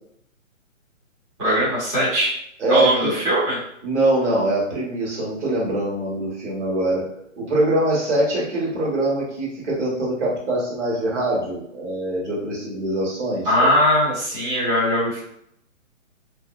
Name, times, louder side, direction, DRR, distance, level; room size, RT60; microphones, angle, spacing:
voice 1, 1.4-2.3 2.7-3.6 13.4-15.2, equal, 20° right, -10 dB, 0.9 m, -20 dB
voice 2, 2.6-3.1 3.8-7.0 7.4-13.7, right 1 dB, 60° right, -5 dB, 1.5 m, -23 dB
2.7 x 2.0 x 2.5 m, 0.72 s
hypercardioid pair, 145°, 40 cm